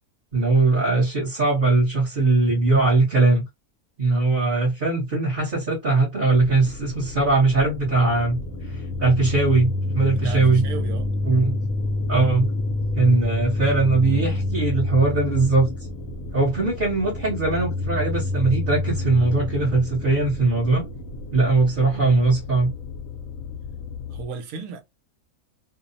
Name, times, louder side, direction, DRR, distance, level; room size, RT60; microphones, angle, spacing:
voice 1, 0.3-3.4 4.0-8.4 8.7-10.6 11.3-11.6 12.1-12.5 13.0-15.7 16.3-20.8 21.3-22.7, right 3 dB, 45° right, 0.8 m, -20 dB
sound 1, 6.3-24.2, left 2 dB, 75° left, 1.0 m, -29 dB
voice 2, 10.1-11.1 24.1-24.8, right 5 dB, 85° right, 1.1 m, -35 dB
2.7 x 2.0 x 2.6 m
omnidirectional pair, 1.5 m